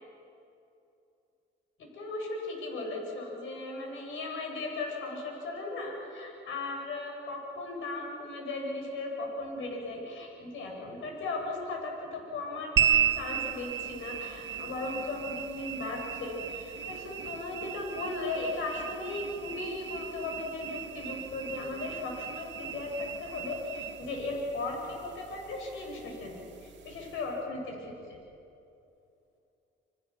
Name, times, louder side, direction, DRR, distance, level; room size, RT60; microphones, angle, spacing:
voice 1, 1.8-28.2, left 2 dB, 80° left, 0 dB, 7.6 m, -37 dB
sound 1, 12.8-27.4, right 10 dB, 65° right, 2.0 m, -35 dB
28.5 x 27.0 x 7.4 m, 2.7 s
cardioid pair, 90°, 20 cm